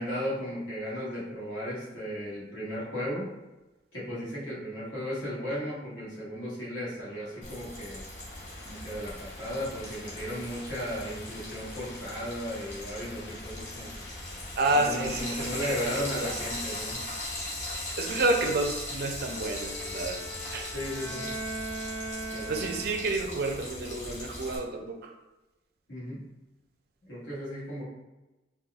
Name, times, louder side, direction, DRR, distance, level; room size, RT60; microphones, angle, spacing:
voice 1, 0.0-3.3 3.9-8.0 8.6-14.1 14.7-17.0 18.1-18.2 20.7-21.3 22.3-22.5 25.9-26.2 27.0-27.8, equal, 80° left, -7 dB, 1.4 m, -35 dB
sound 1, 7.0-16.9, left 2 dB, 55° left, 0.5 m, -49 dB
Frying (food), 7.4-24.6, left 1 dB, 40° left, 0.8 m, -39 dB
voice 2, 14.6-16.3 18.0-20.2 20.5-20.7 22.5-25.1, right 2 dB, 55° right, 3 dB, 0.4 m, -29 dB
Bowed string instrument, 19.2-23.3, right 1 dB, 5° left, 0.6 m, -39 dB
4.0 x 2.3 x 2.4 m, 1.0 s
head